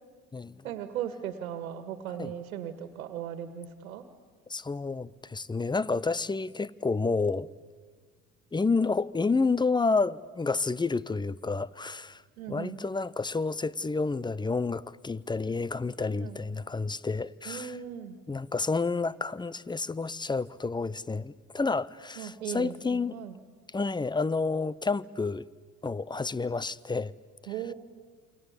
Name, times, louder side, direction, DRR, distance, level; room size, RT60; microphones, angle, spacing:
voice 1, 0.6-4.1 12.4-12.8 16.2-16.4 17.5-18.2 22.2-23.4 27.5-27.7, right 10 dB, 85° right, 1.9 m, -37 dB
voice 2, 4.5-7.5 8.5-12.2 12.5-17.7 18.3-23.2 23.7-25.5 25.8-27.1, left 4 dB, 10° left, 0.7 m, -29 dB
28.5 x 25.0 x 8.3 m
hypercardioid pair, 70°, 41 cm